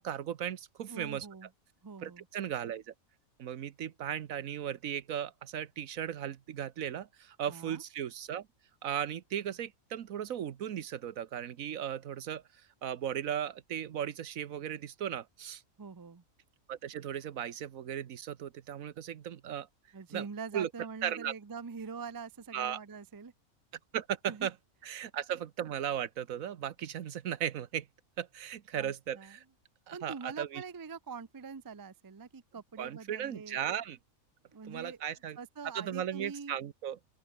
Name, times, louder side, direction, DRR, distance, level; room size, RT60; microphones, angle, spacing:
voice 1, 0.0-1.3 2.0-2.9 3.4-8.5 8.8-12.4 12.8-15.6 16.7-19.7 20.1-20.3 20.5-20.7 21.0-21.3 22.5-22.8 23.9-24.5 24.8-27.9 28.2-29.4 29.9-30.6 32.8-34.0 34.7-35.4 35.7-37.0, right 9 dB, 70° right, 1.3 m, -36 dB
voice 2, 0.9-1.5 1.8-2.3 7.5-7.8 15.8-16.2 19.9-23.3 24.3-24.5 28.7-29.3 29.9-33.6 34.5-35.0 35.4-36.6, right 5 dB, 30° right, 0.3 m, -44 dB
open air
omnidirectional pair, 1.5 m